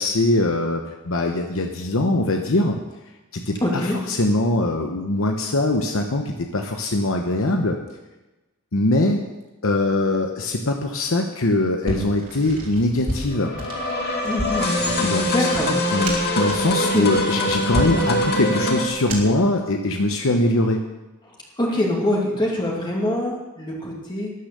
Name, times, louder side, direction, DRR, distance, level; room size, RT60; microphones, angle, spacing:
voice 1, 0.0-2.8 3.3-7.8 8.7-9.2 9.6-13.5 15.0-15.5 15.9-20.8, left 2 dB, 65° left, 3 dB, 1.0 m, -22 dB
voice 2, 3.6-4.0 14.2-14.8 15.2-15.8 16.8-17.1 21.2-24.3, left 1 dB, 20° left, -2 dB, 2.4 m, -24 dB
sound 1, 11.8-19.5, equal, 40° right, 3.3 m, -32 dB
sound 2, 13.3-18.9, left 1 dB, 50° left, 2.2 m, -23 dB
12.5 x 10.0 x 6.8 m, 1.1 s
head